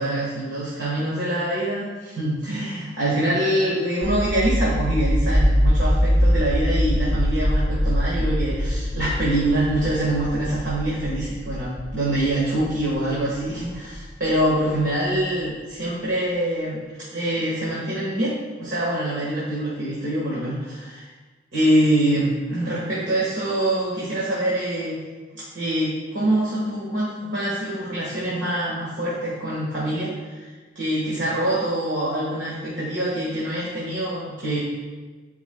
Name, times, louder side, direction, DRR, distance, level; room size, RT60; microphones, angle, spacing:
voice 1, 0.0-16.8 17.1-21.1 21.5-25.0 25.3-30.5 30.7-34.6, right 1 dB, 75° right, -7 dB, 1.7 m, -25 dB
sound 1, 4.0-14.7, equal, 60° right, 1.5 m, -23 dB
11.0 x 4.8 x 2.3 m, 1.4 s
head